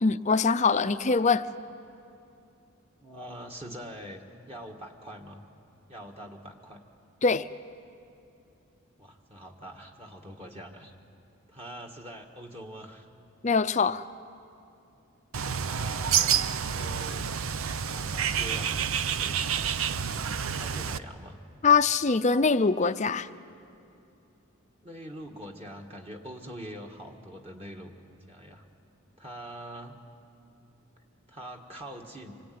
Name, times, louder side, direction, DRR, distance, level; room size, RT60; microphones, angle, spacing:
voice 1, 0.0-1.5 7.2-7.5 13.4-14.0 21.6-23.3, left 4 dB, 35° left, 0.6 m, -23 dB
voice 2, 3.0-5.4 5.9-6.8 9.0-10.9 11.5-13.1 15.6-16.4 16.7-17.4 17.8-19.4 20.1-21.4 24.8-27.9 28.3-28.7 29.2-30.0 31.3-32.3, equal, 30° right, 1.8 m, -44 dB
Bird, 15.3-21.0, right 7 dB, 80° right, 0.7 m, -28 dB
26.0 x 22.5 x 9.5 m
head